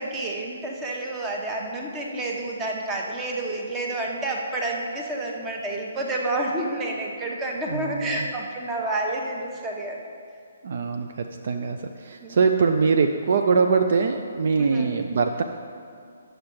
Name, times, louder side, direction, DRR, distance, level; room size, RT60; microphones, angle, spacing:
voice 1, 0.0-10.0 12.2-12.4 14.5-14.9, right 2 dB, 15° right, 0 dB, 1.0 m, -29 dB
voice 2, 7.7-8.3 10.6-15.4, right 5 dB, 50° right, 5 dB, 0.4 m, -23 dB
9.6 x 6.4 x 4.6 m, 2.3 s
figure-of-eight pair, 135°, 0 cm